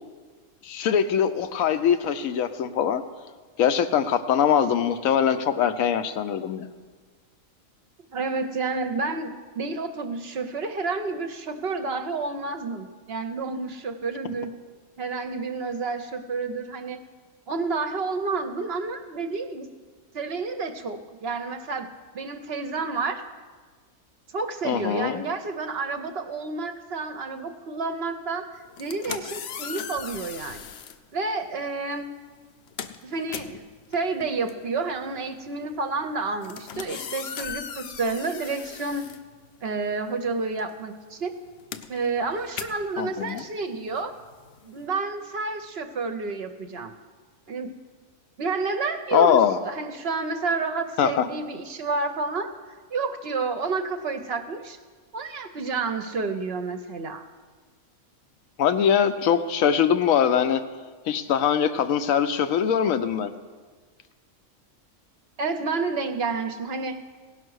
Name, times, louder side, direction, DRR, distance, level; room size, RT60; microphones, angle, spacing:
voice 1, 0.6-3.0 3.6-6.6 24.6-25.2 43.0-43.4 49.1-49.6 51.0-51.3 58.6-60.6 61.1-63.3, left 8 dB, 85° left, 10 dB, 1.1 m, -22 dB
voice 2, 8.1-14.5 15.0-17.0 17.5-19.7 20.1-21.9 22.1-23.2 24.3-30.7 31.1-32.0 33.0-33.6 33.9-39.1 39.6-41.3 41.9-44.1 44.6-47.0 47.5-47.7 48.4-54.8 55.1-57.3 65.4-67.0, right 4 dB, 60° right, 8 dB, 0.8 m, -30 dB
sound 1, 28.6-31.0 31.9-32.1 32.4-39.9 40.2-44.9, left 8 dB, 65° left, 0.8 m, -39 dB
17.0 x 5.7 x 6.3 m, 1.5 s
omnidirectional pair, 1.4 m